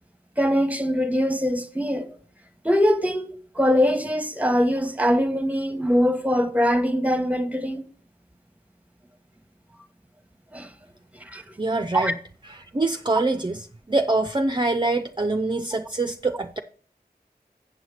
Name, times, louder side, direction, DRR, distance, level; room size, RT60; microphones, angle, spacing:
voice 1, 0.4-2.1 2.6-3.2 3.5-7.9 10.5-10.7 11.3-11.4 11.9-12.1, equal, 10° right, 1.1 m, -22 dB
voice 2, 11.6-12.2 12.4-16.6, right 2 dB, 30° right, 0.6 m, -25 dB
7.8 x 7.3 x 4.9 m
wide cardioid pair, 55°, 17 cm